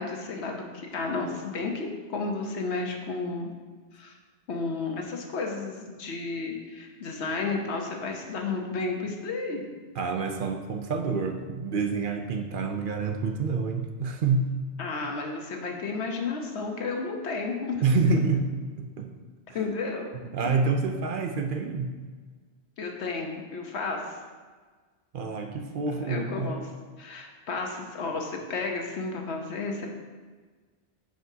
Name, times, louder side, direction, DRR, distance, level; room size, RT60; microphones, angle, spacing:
voice 1, 0.0-3.5 3.9-4.2 4.5-9.7 14.8-17.8 19.5-20.1 22.8-24.2 26.0-26.6 27.0-29.9, left 3 dB, 85° left, 2 dB, 1.2 m, -32 dB
voice 2, 10.0-14.5 17.8-18.5 18.8-19.1 19.5-19.6 20.3-21.9 25.1-26.6, right 4 dB, 60° right, 4 dB, 0.7 m, -27 dB
9.4 x 5.1 x 2.7 m, 1.4 s
omnidirectional pair, 1.1 m